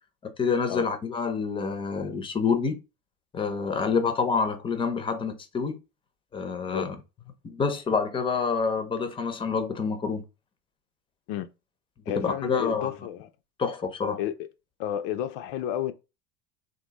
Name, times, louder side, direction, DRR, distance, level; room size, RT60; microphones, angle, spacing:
voice 1, 0.2-2.8 3.3-5.8 6.3-6.9 7.4-10.2 12.1-12.9 13.6-14.2, left 5 dB, 15° left, 0.7 m, -27 dB
voice 2, 12.1-13.3 14.2-14.5 14.8-15.9, left 11 dB, 55° left, 0.6 m, -31 dB
3.6 x 2.7 x 3.9 m
supercardioid pair, 135°, 30 cm